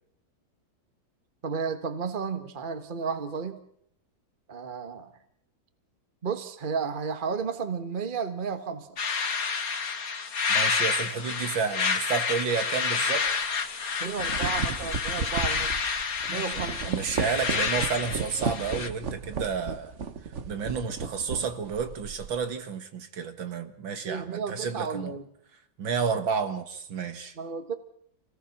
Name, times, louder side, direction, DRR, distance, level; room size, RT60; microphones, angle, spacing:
voice 1, 1.4-3.6 4.5-5.1 6.2-9.0 14.0-16.0 16.3-16.9 24.0-25.2 27.4-27.7, right 5 dB, 25° right, 1.6 m, -33 dB
sound 1, 9.0-18.9, left 5 dB, 45° left, 2.0 m, -29 dB
voice 2, 10.5-13.3 16.3-19.9 20.5-25.2 25.8-27.4, right 6 dB, 70° right, 2.4 m, -31 dB
sound 2, 13.3-13.5 14.0-22.4, right 5 dB, 45° right, 1.2 m, -34 dB
28.0 x 18.5 x 6.0 m
omnidirectional pair, 2.2 m